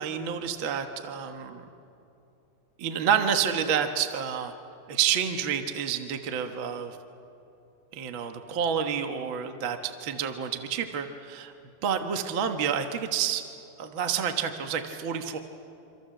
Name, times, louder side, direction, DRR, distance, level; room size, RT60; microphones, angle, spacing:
voice 1, 0.0-1.7 2.8-4.5 4.9-7.0 7.9-11.5 11.8-13.4 13.8-15.4, right 8 dB, 55° right, 6 dB, 1.4 m, -29 dB
27.5 x 26.5 x 7.7 m, 2.7 s
omnidirectional pair, 4.1 m